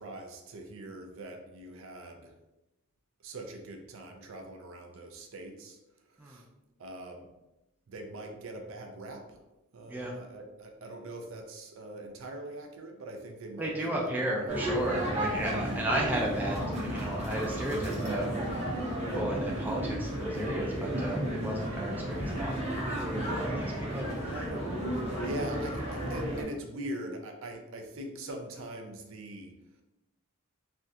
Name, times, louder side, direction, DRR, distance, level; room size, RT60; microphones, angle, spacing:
voice 1, 0.0-2.3 3.2-5.8 6.1-6.5 6.8-7.3 7.9-9.4 9.7-14.5 22.1-22.2 23.2-23.4 25.2-29.5, right 1 dB, 65° right, 3 dB, 0.5 m, -42 dB
voice 2, 13.6-18.2 19.0-24.4, right 1 dB, 10° right, -2 dB, 0.3 m, -34 dB
sound 1, 14.5-26.4, right 1 dB, 30° right, 0.7 m, -33 dB
3.3 x 2.4 x 2.7 m, 0.97 s
head